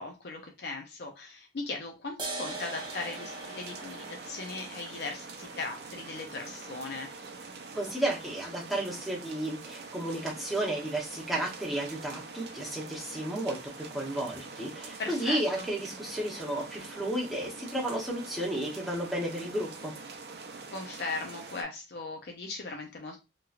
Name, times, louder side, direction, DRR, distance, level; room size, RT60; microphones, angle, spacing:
voice 1, 0.0-7.2 15.0-15.7 20.7-23.2, left 3 dB, 65° left, 2 dB, 0.6 m, -38 dB
sound 1, 2.2-9.2, right 2 dB, 25° right, 0.9 m, -44 dB
sound 2, 2.5-21.6, right 4 dB, 65° right, 0.6 m, -45 dB
voice 2, 7.8-20.0, right 1 dB, ahead, -4 dB, 0.9 m, -33 dB
3.0 x 2.9 x 2.4 m, 0.25 s
head